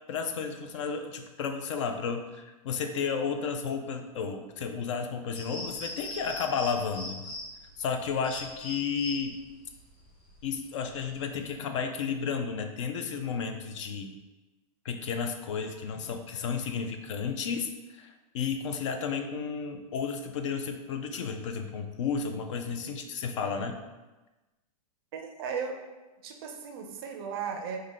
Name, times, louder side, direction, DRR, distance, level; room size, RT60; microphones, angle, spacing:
voice 1, 0.1-7.3 7.8-9.4 10.4-14.1 14.8-23.8, left 6 dB, 50° left, 6 dB, 0.4 m, -32 dB
sound 1, 5.3-11.5, left 1 dB, 75° left, 1.2 m, -41 dB
voice 2, 25.1-25.8 26.2-27.8, right 6 dB, 40° right, 3 dB, 0.4 m, -36 dB
4.9 x 2.1 x 3.7 m, 1.1 s
supercardioid pair, 175°, 19 cm